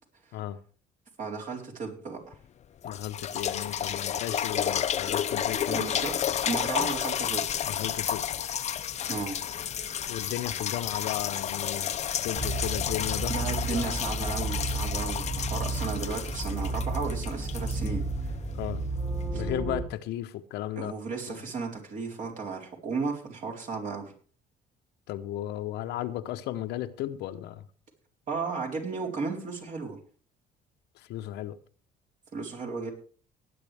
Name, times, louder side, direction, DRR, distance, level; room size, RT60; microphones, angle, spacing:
voice 1, 1.2-2.2 5.7-6.1 6.4-7.5 9.1-9.4 9.8-10.0 13.3-18.0 19.3-19.4 20.8-24.1 28.3-30.0 32.3-32.9, right 4 dB, 50° right, 4.1 m, -34 dB
sound 1, 2.3-2.4 2.8-18.6 19.2-19.3, left 9 dB, 40° left, 0.6 m, -31 dB
voice 2, 2.8-6.2 6.7-6.9 7.6-8.2 10.1-13.4 13.7-14.0 18.5-18.8 19.3-20.9 21.3-21.4 25.1-27.6 30.9-31.6, left 13 dB, 85° left, 0.9 m, -35 dB
sound 2, 12.4-19.8, right 2 dB, 20° right, 2.3 m, -32 dB
18.5 x 9.6 x 3.4 m
cardioid pair, 110°, 17 cm